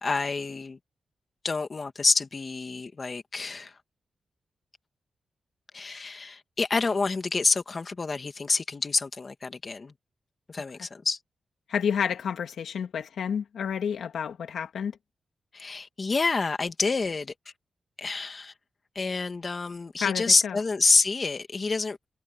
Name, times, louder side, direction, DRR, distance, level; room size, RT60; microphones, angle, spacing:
voice 1, 0.0-0.8 1.4-3.7 5.7-9.9 10.5-11.2 15.5-17.3 18.0-18.5 19.0-22.0, left 4 dB, 40° left, 2.2 m, -27 dB
voice 2, 11.7-14.9 20.0-20.6, left 7 dB, 85° left, 2.2 m, -30 dB
cardioid pair, 90°, 0 cm